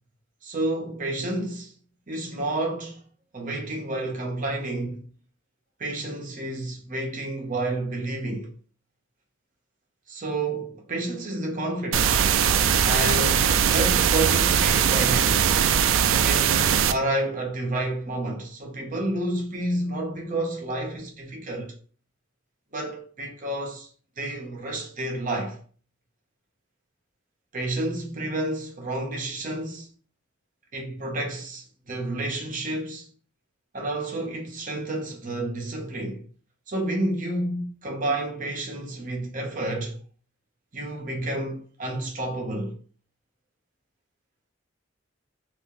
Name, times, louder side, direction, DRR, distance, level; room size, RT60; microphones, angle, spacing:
voice 1, 0.4-1.7 2.1-3.1 3.3-5.1 5.8-8.5 10.1-12.3 12.8-15.5 16.2-21.7 22.7-23.9 24.2-25.6 27.5-29.9 30.7-33.1 33.7-36.2 36.7-40.0 40.7-42.8, right 1 dB, 45° right, 0.9 m, -30 dB
sound 1, 11.9-16.9, right 8 dB, 85° right, 0.3 m, -20 dB
2.7 x 2.6 x 3.7 m
head